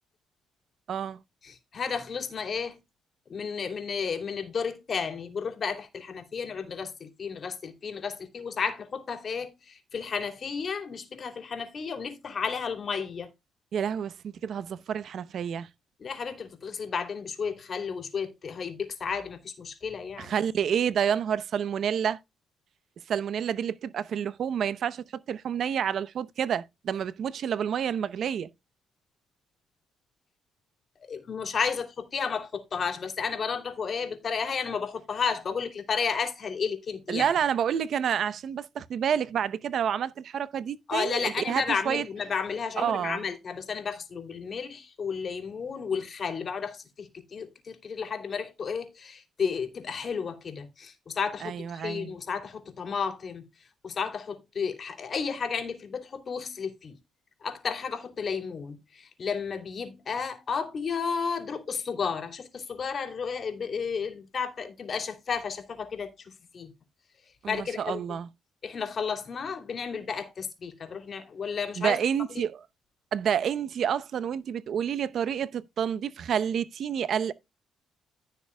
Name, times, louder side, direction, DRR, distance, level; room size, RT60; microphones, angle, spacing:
voice 1, 0.9-1.2 13.7-15.7 20.2-22.2 23.1-28.5 37.1-42.0 42.8-43.2 51.4-52.1 67.4-68.3 71.8-72.6 73.1-77.3, right 8 dB, 65° right, 0.7 m, -29 dB
voice 2, 1.4-2.8 3.3-13.3 16.0-20.3 31.0-37.3 40.9-53.4 53.8-57.0 57.4-66.7 67.5-68.0 68.6-72.0, left 6 dB, 45° left, 2.8 m, -32 dB
15.5 x 6.8 x 2.2 m
cardioid pair, 90°, 0 cm